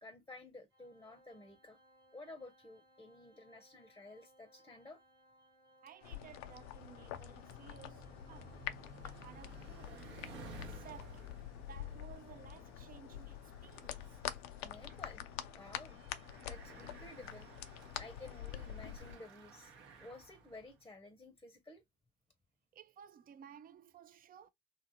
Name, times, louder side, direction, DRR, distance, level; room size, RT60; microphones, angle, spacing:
voice 1, 0.0-1.8 2.1-5.0 14.6-15.3 15.5-16.0 16.4-17.5 18.0-19.7 20.0-21.8, left 2 dB, 15° left, 0.7 m, -53 dB
Organ, 0.7-11.4, equal, 90° right, 1.0 m, -67 dB
voice 2, 5.8-10.2 10.7-14.2 22.7-24.5, right 9 dB, 45° right, 0.5 m, -57 dB
sound 1, 6.0-19.2, left 12 dB, 75° left, 0.4 m, -47 dB
Bicycle, 6.2-20.8, right 2 dB, 65° right, 0.9 m, -56 dB
2.7 x 2.4 x 2.7 m
hypercardioid pair, 55°, 21 cm